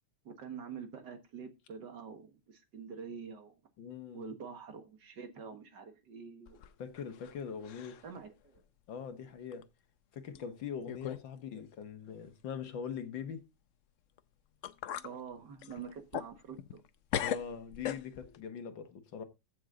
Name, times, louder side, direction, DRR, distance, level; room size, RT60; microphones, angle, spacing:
voice 1, 0.3-3.6 4.1-6.6 8.0-8.6 15.0-16.8, right 6 dB, 70° right, 2.2 m, -46 dB
voice 2, 3.8-4.3 6.8-8.0 8.9-9.7 10.1-13.4 17.2-19.2, left 7 dB, 85° left, 2.1 m, -42 dB
sound 1, 6.5-7.4 7.6-8.1 8.6-8.7 9.5-9.6 10.4-10.5 10.9-11.3 11.5-11.7 14.2-14.3 14.6-15.1 15.6-16.9 17.1-18.4, left 11 dB, 70° left, 0.7 m, -39 dB
14.5 x 6.6 x 3.7 m
omnidirectional pair, 2.0 m